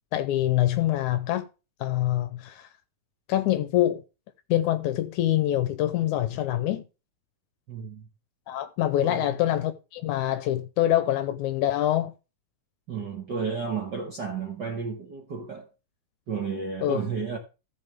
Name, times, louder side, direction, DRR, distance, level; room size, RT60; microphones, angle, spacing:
voice 1, 0.1-1.5 1.8-2.7 3.3-4.0 4.5-6.8 8.5-12.1 16.8-17.0, left 13 dB, 75° left, 1.9 m, -25 dB
voice 2, 7.7-8.1 9.0-9.3 12.9-15.7 16.3-17.4, right 5 dB, 50° right, 1.3 m, -32 dB
14.0 x 7.2 x 3.5 m
omnidirectional pair, 3.8 m